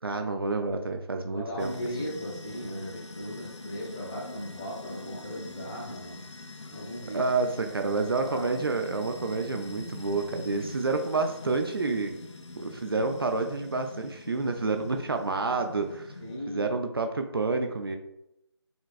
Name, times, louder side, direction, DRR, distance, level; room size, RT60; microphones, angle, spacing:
voice 1, 0.0-1.7 7.1-12.2 12.6-16.1 16.5-18.0, right 3 dB, 55° right, 5 dB, 0.5 m, -29 dB
voice 2, 1.2-6.2 6.6-7.3 7.7-8.5 16.2-16.7, equal, 15° left, -6 dB, 0.9 m, -38 dB
sound 1, 1.6-16.4, left 3 dB, 80° left, 0.5 m, -44 dB
5.0 x 3.0 x 2.4 m, 0.83 s
figure-of-eight pair, 160°, 15 cm